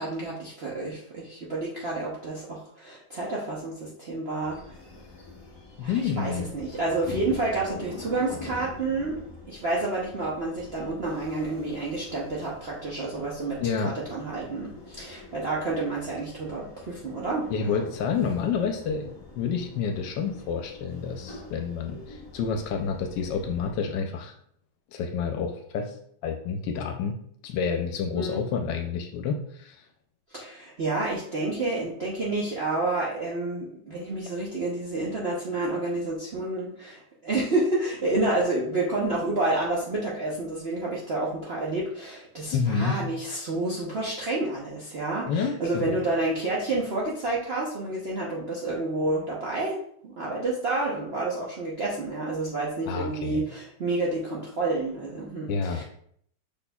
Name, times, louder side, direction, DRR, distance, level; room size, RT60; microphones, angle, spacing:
voice 1, 0.0-4.6 5.8-9.2 9.5-17.8 28.1-28.4 30.3-49.8 50.0-55.8, right 2 dB, 55° right, -5 dB, 0.7 m, -29 dB
sound 1, 4.4-23.7, left 3 dB, 25° left, 0.5 m, -45 dB
voice 2, 5.8-6.5 13.6-14.0 17.5-24.3 24.9-26.0 26.2-27.2 27.4-29.8 42.5-43.0 45.3-45.9 52.9-53.4 55.5-55.8, left 6 dB, 80° left, 4 dB, 1.2 m, -29 dB
5.6 x 4.3 x 2.2 m, 0.66 s
omnidirectional pair, 1.9 m